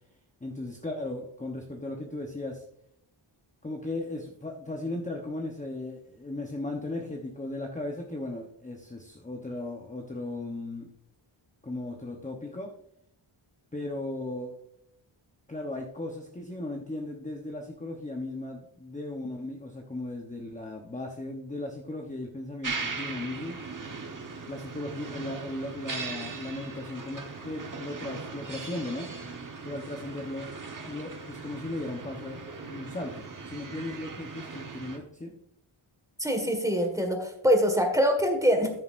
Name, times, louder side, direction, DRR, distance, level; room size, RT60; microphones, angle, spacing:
voice 1, 0.4-2.6 3.6-10.9 11.6-12.7 13.7-14.5 15.5-23.6 24.5-29.1 29.6-30.5 30.8-35.3, left 2 dB, 15° left, 1 dB, 0.9 m, -36 dB
sound 1, 22.6-35.0, right 4 dB, 40° right, 1.3 m, -39 dB
voice 2, 36.2-38.7, equal, 5° right, 4 dB, 1.7 m, -24 dB
13.5 x 6.7 x 2.5 m, 0.75 s
wide cardioid pair, 135°, 49 cm